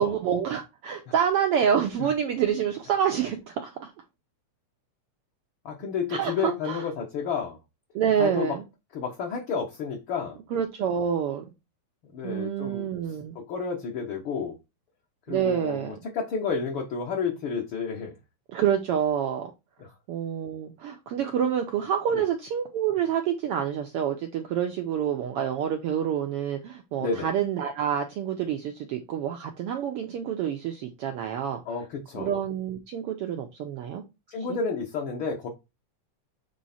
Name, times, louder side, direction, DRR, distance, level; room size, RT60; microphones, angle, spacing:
voice 1, 0.0-3.9 6.1-6.8 7.9-8.6 10.5-11.4 12.2-13.3 15.3-15.9 18.5-19.5 20.1-31.6 32.1-34.0 34.5-34.6, right 8 dB, 85° right, 4 dB, 1.3 m, -27 dB
voice 2, 5.6-7.6 8.2-8.6 8.9-10.4 12.1-12.9 13.3-14.5 15.3-18.2 19.8-19.9 22.1-22.2 27.0-27.3 31.6-32.3 34.3-35.5, left 5 dB, 60° left, 0 dB, 1.4 m, -31 dB
7.5 x 3.1 x 4.2 m, 0.24 s
omnidirectional pair, 3.4 m